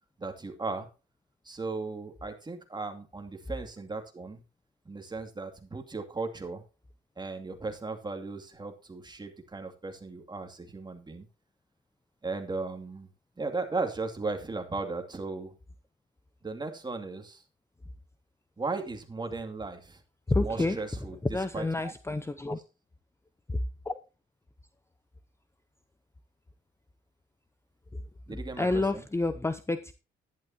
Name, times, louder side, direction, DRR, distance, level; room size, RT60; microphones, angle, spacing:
voice 1, 0.2-0.9 1.4-4.4 4.8-6.6 7.2-11.3 12.2-13.1 13.4-15.5 16.4-17.4 18.6-20.0 20.4-21.9 28.3-29.1, right 3 dB, 20° right, 2.5 m, -36 dB
voice 2, 20.3-20.8 21.3-22.6 23.9-24.0 28.3-29.9, left 2 dB, 15° left, 0.7 m, -29 dB
11.5 x 10.5 x 2.9 m
cardioid pair, 90°, 20 cm